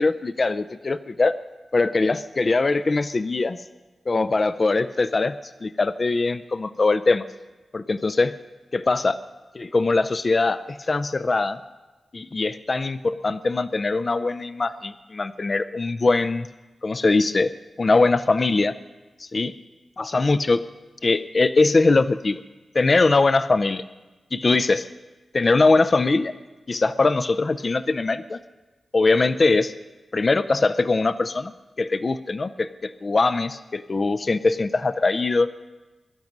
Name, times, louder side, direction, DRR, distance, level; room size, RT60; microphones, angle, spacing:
voice 1, 0.0-1.4 1.7-3.6 4.1-7.2 7.7-8.4 8.7-9.2 9.6-11.6 12.1-16.5 16.8-17.5 17.8-18.7 19.2-19.5 20.0-20.6 21.0-22.4 22.7-23.8 24.3-24.9 25.3-26.3 26.7-28.4 28.9-29.7 30.1-31.5 31.8-35.5, left 3 dB, 40° left, 12 dB, 0.5 m, -21 dB
22.5 x 12.0 x 5.3 m, 1.2 s
wide cardioid pair, 85°, 0 cm